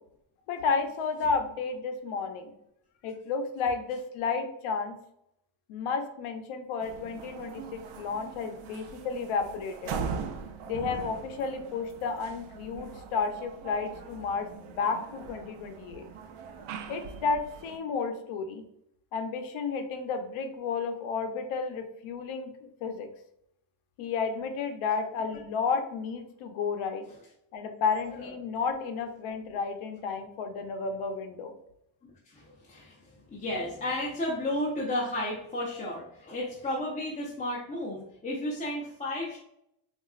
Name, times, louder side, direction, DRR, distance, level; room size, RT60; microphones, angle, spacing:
voice 1, 0.5-2.5 3.0-5.0 5.7-9.9 10.7-16.1 16.9-18.6 19.1-23.1 24.0-27.0 27.5-31.5, left 5 dB, 75° left, 6 dB, 0.7 m, -32 dB
sound 1, 6.8-17.8, right 6 dB, 80° right, 0.6 m, -41 dB
voice 2, 32.3-39.4, left 1 dB, 15° left, -5 dB, 0.6 m, -33 dB
3.9 x 2.4 x 2.3 m, 0.78 s
cardioid pair, 120°, 50 cm